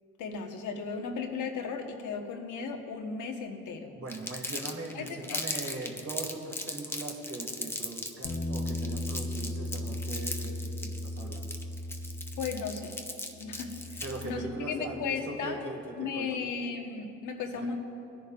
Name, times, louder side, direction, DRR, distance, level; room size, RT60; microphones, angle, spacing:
voice 1, 0.2-4.0 4.9-5.4 12.4-13.0 13.4-15.6 16.0-17.7, left 5 dB, 80° left, 3 dB, 1.4 m, -36 dB
voice 2, 3.9-11.5 14.0-16.5 17.6-17.7, right 2 dB, 50° right, -1 dB, 2.6 m, -40 dB
Crumpling crinkling, 4.1-14.3, left 1 dB, 10° left, 1.0 m, -38 dB
Bass guitar, 8.2-14.5, left 1 dB, 65° left, 1.2 m, -37 dB
20.5 x 10.5 x 2.5 m, 2.7 s
cardioid pair, 90°, 30 cm